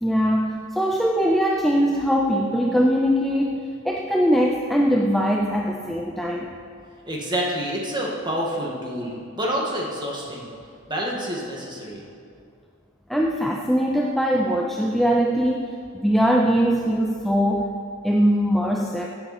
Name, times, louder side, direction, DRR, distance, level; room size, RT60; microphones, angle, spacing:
voice 1, 0.0-6.6 13.1-17.7 18.0-19.1, equal, ahead, 0 dB, 0.5 m, -21 dB
voice 2, 7.1-10.5 10.9-12.1, equal, 20° right, -3 dB, 1.9 m, -28 dB
16.0 x 8.1 x 4.3 m, 2.4 s
head